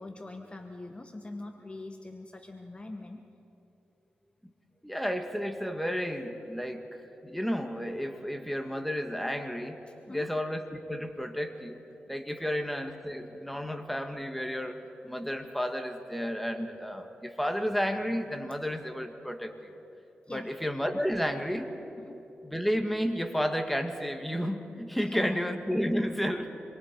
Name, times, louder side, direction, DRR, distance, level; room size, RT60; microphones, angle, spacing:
voice 1, 0.0-3.3 10.1-10.3 20.3-20.5 22.0-22.2 25.0-25.2, left 2 dB, 30° left, 4 dB, 1.3 m, -43 dB
voice 2, 4.8-9.8 10.1-11.8 12.1-19.7 20.3-21.7 22.4-26.5, equal, ahead, 5 dB, 1.9 m, -32 dB
26.5 x 23.0 x 4.7 m, 2.9 s
cardioid pair, 65°, 4 cm